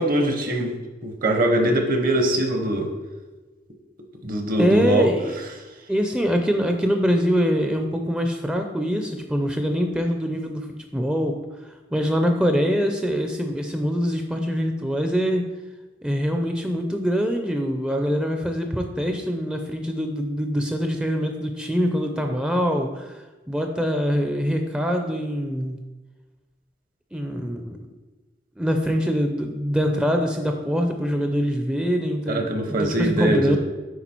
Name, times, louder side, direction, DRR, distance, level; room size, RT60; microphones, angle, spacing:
voice 1, 0.0-2.9 4.2-5.1 32.3-33.6, right 1 dB, 55° right, 4 dB, 1.1 m, -22 dB
voice 2, 4.5-5.4 5.9-10.7 10.9-11.4 11.9-15.5 16.0-25.8 27.1-27.9 28.6-33.6, equal, 5° right, 4 dB, 0.5 m, -24 dB
8.2 x 4.9 x 4.4 m, 1.2 s
head